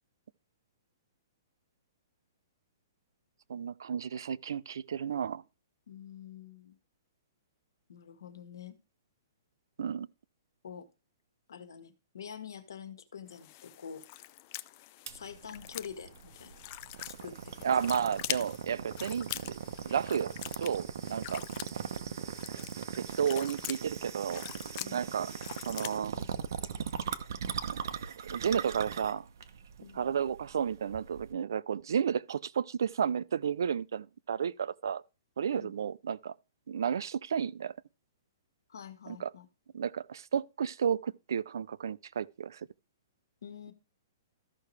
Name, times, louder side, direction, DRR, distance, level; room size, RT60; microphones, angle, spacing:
voice 1, 3.5-5.4 9.8-10.1 17.6-19.6 19.8-21.4 22.9-24.5 24.9-25.3 25.7-26.2 27.6-27.8 28.3-29.3 29.9-35.0 35.4-36.3 36.7-37.7 39.1-39.3 39.7-42.7, right 7 dB, 80° right, 0.5 m, -32 dB
voice 2, 5.9-6.8 7.9-8.8 10.6-10.9 11.5-14.0 15.1-16.5 17.0-17.7 24.8-25.0 29.8-30.0 35.6-35.7 38.7-39.5 43.4-43.7, left 7 dB, 85° left, 1.6 m, -46 dB
sound 1, 13.3-26.0, left 17 dB, 30° left, 0.3 m, -44 dB
sound 2, 15.1-31.3, right 8 dB, 65° right, 0.9 m, -40 dB
13.5 x 5.8 x 3.2 m
hypercardioid pair, 165°, 2 cm